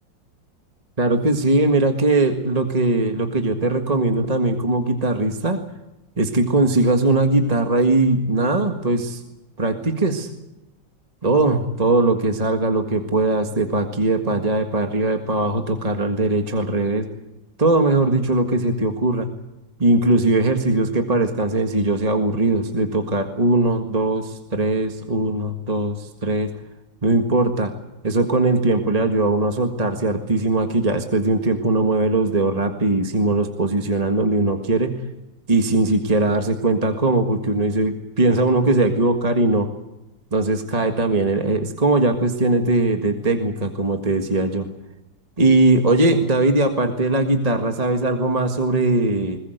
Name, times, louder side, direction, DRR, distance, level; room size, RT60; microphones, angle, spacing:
voice 1, 1.0-5.6 6.2-9.2 9.6-10.3 11.2-17.1 17.6-19.3 19.8-26.5 27.0-27.7 28.0-35.0 35.5-39.7 40.3-44.7 45.4-49.4, right 2 dB, 20° right, 5 dB, 1.7 m, -20 dB
21.5 x 20.5 x 7.9 m, 0.97 s
omnidirectional pair, 2.0 m